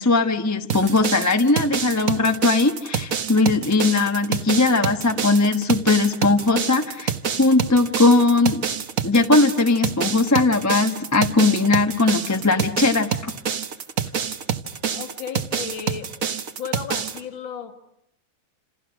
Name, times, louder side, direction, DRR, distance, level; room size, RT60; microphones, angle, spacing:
voice 1, 0.0-7.1 7.4-8.6 9.0-13.3, left 3 dB, 10° left, 5 dB, 0.8 m, -19 dB
sound 1, 0.7-17.2, right 7 dB, 45° right, 1.4 m, -27 dB
voice 2, 14.9-16.1 16.6-17.8, left 7 dB, 65° left, 7 dB, 2.6 m, -34 dB
29.0 x 28.5 x 6.2 m, 0.80 s
omnidirectional pair, 2.3 m